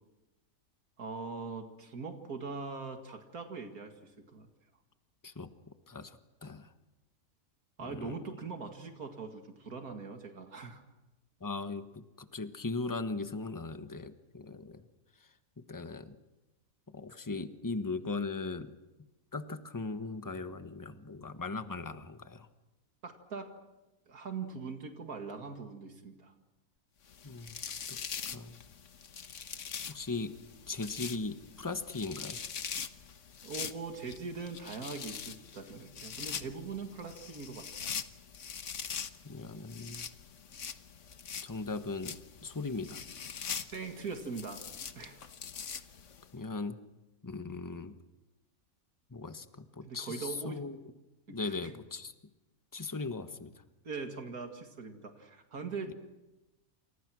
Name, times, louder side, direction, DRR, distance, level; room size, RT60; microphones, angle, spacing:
voice 1, 1.0-4.5 7.8-10.8 23.0-23.5 24.1-26.3 33.4-37.8 43.7-44.6 44.9-45.2 49.8-50.6 51.3-51.7 53.8-55.9, right 4 dB, 85° right, 5 dB, 2.5 m, -41 dB
voice 2, 5.9-6.7 7.8-8.2 11.4-14.9 15.6-16.2 16.9-18.8 19.3-22.5 27.2-27.6 27.9-28.0 28.3-28.6 29.9-30.3 30.7-32.4 39.2-40.1 41.4-43.0 46.3-46.8 47.2-48.0 49.1-50.8 51.3-52.1 52.7-53.6, left 3 dB, 15° left, 9 dB, 1.2 m, -39 dB
sound 1, 27.1-46.3, left 7 dB, 60° left, 1.4 m, -43 dB
29.5 x 27.0 x 6.2 m, 1.0 s
omnidirectional pair, 1.5 m